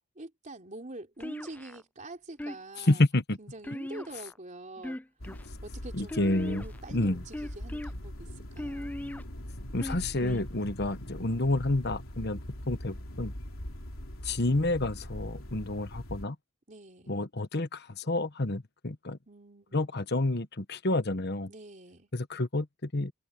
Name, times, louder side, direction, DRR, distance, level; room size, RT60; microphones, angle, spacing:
voice 1, 0.2-3.0 3.4-5.0 5.6-6.1 6.4-8.9 16.7-17.2 19.3-19.9 21.5-22.1, right 2 dB, 35° right, 3.7 m, -45 dB
sound 1, 1.2-1.8 2.4-2.9 3.6-4.4 4.8-5.5 6.1-6.8 7.3-7.9 8.6-9.2 9.8-10.4, left 1 dB, 10° left, 0.3 m, -38 dB
voice 2, 2.9-3.4 5.9-6.6 6.9-7.2 9.7-12.4 12.7-13.3 14.2-16.3 17.1-19.2 19.7-21.5 22.1-23.1, left 2 dB, 50° left, 1.3 m, -29 dB
sound 2, 5.2-16.2, equal, 75° left, 3.4 m, -42 dB
head